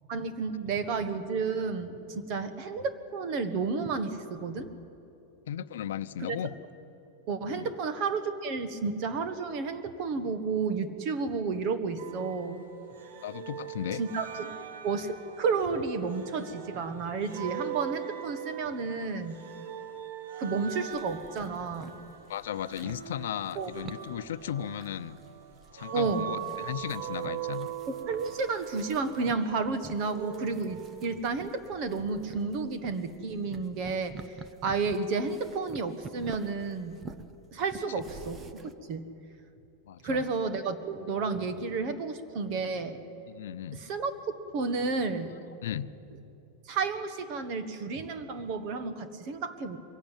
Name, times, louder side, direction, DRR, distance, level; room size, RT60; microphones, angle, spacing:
voice 1, 0.1-4.7 6.3-6.4 7.3-12.6 14.0-14.6 14.8-19.4 20.4-22.0 23.6-23.7 25.9-26.3 28.1-37.0 37.5-39.1 40.0-43.0 43.7-44.2 44.5-45.3 46.7-49.8, right 4 dB, 35° right, 10 dB, 1.4 m, -31 dB
voice 2, 5.5-6.5 7.5-7.7 13.2-14.0 22.3-25.2 25.7-27.7 39.9-40.3 43.3-43.8 45.6-45.9, left 10 dB, 90° left, 13 dB, 0.7 m, -36 dB
sound 1, 12.0-31.2, right 10 dB, 75° right, 1.8 m, -41 dB
sound 2, 20.9-38.7, right 4 dB, 15° right, 0.7 m, -49 dB
23.0 x 17.0 x 9.1 m, 2.8 s
supercardioid pair, 175°, 0 cm